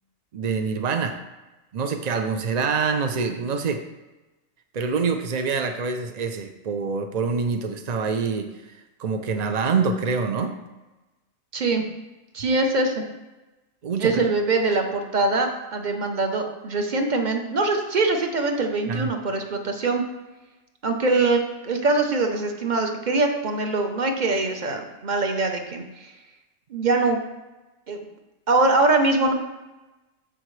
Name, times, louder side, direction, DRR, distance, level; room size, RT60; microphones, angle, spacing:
voice 1, 0.3-1.2 1.7-3.8 4.7-10.6 13.8-14.2 18.9-19.1, right 5 dB, 60° right, 6 dB, 0.4 m, -26 dB
voice 2, 11.5-11.8 12.3-13.0 14.0-20.0 20.8-26.1 26.7-27.2 27.9-28.0 28.5-29.3, right 3 dB, 40° right, 4 dB, 0.9 m, -23 dB
14.0 x 4.9 x 3.2 m, 1.1 s
omnidirectional pair, 1.5 m